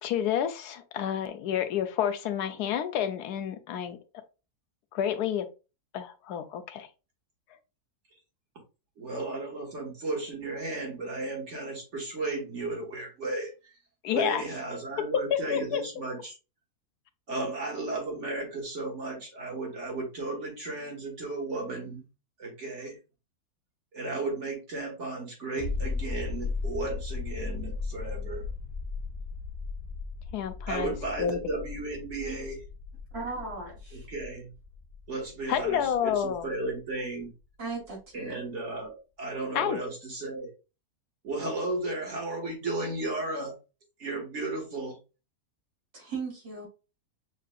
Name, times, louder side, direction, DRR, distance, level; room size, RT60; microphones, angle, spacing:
voice 1, 0.0-4.0 4.9-5.5 5.9-6.9 14.0-14.4 15.3-15.8 30.3-30.9 31.2-31.4 35.5-36.5 39.5-39.8, left 9 dB, 85° left, 1.2 m, -29 dB
voice 2, 9.0-13.7 14.1-16.4 17.3-22.0 22.4-23.0 23.9-28.4 30.7-32.6 33.9-34.5 35.1-37.3 38.1-40.5 41.2-43.5 44.0-45.0, right 2 dB, 50° right, 1.9 m, -34 dB
sound 1, 25.6-36.9 37.2-37.3, left 4 dB, 70° left, 1.2 m, -37 dB
voice 3, 33.1-34.1 37.6-38.4 45.9-46.7, right 4 dB, 75° right, 2.8 m, -37 dB
6.4 x 2.6 x 2.4 m
omnidirectional pair, 1.6 m